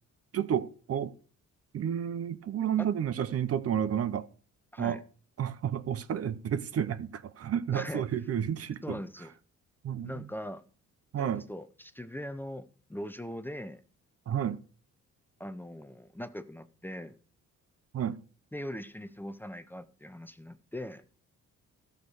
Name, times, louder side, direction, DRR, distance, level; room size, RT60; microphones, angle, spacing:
voice 1, 0.3-1.1 1.7-4.3 4.8-5.0 5.4-9.0 9.8-10.3 11.1-11.4 14.3-14.6 17.9-18.2, right 9 dB, 50° right, 0.7 m, -31 dB
voice 2, 7.7-8.1 8.8-9.3 10.0-10.6 11.2-13.8 15.4-17.2 18.5-21.0, left 1 dB, 5° left, 0.6 m, -40 dB
13.5 x 6.6 x 4.7 m
cardioid pair, 90°, 30 cm